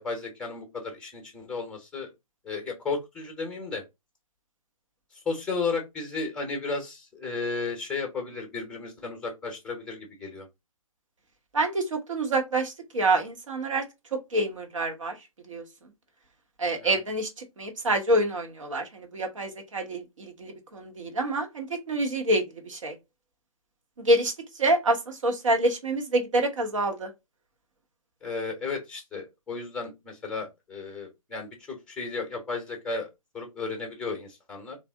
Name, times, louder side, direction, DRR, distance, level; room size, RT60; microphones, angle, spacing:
voice 1, 0.0-2.1 2.4-3.8 5.2-10.5 16.8-17.0 28.2-34.8, left 4 dB, 5° left, 0.8 m, -34 dB
voice 2, 11.5-13.8 14.3-15.1 15.5-15.6 16.6-17.3 17.6-22.9 24.0-24.3 24.6-27.1, right 1 dB, 60° right, 1.2 m, -27 dB
3.4 x 2.5 x 3.5 m
figure-of-eight pair, 140°, 18 cm